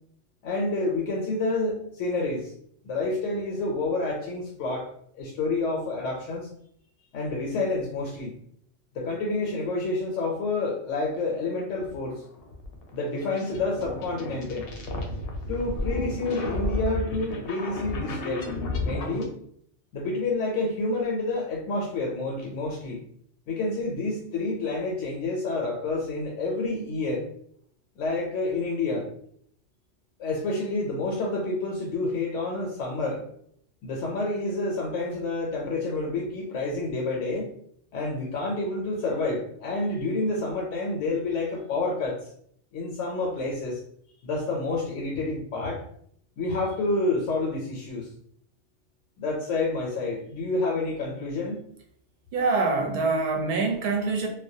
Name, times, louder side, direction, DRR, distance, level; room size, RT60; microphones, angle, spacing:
voice 1, 0.4-2.5 2.8-4.9 5.1-6.5 7.1-8.4 8.9-12.2 12.9-14.7 15.5-18.5 18.8-19.4 19.9-23.0 23.5-27.3 28.0-29.0 30.2-33.2 33.8-37.5 37.9-42.3 42.7-43.8 44.2-45.8 46.4-48.1 49.2-51.6, left 2 dB, 85° left, -2 dB, 0.9 m, -29 dB
sound 1, 11.8-19.2, left 2 dB, 65° left, 0.7 m, -32 dB
voice 2, 52.3-54.3, right 3 dB, 60° right, 2 dB, 0.7 m, -25 dB
2.2 x 2.1 x 2.6 m, 0.66 s
omnidirectional pair, 1.2 m